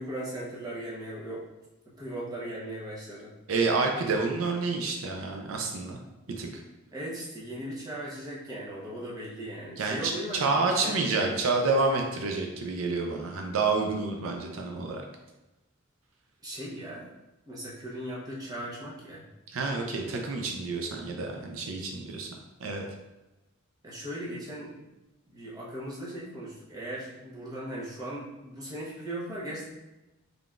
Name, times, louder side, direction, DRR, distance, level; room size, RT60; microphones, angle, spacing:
voice 1, 0.0-1.5 2.0-3.3 6.9-11.0 16.4-17.1 17.5-19.2 23.8-24.8 25.3-29.6, right 1 dB, 20° right, -7 dB, 0.9 m, -38 dB
voice 2, 3.5-6.0 6.4-6.6 9.8-15.0 19.5-22.3 22.6-22.8, right 3 dB, 80° right, 2 dB, 0.5 m, -28 dB
3.8 x 3.3 x 2.4 m, 1.0 s
head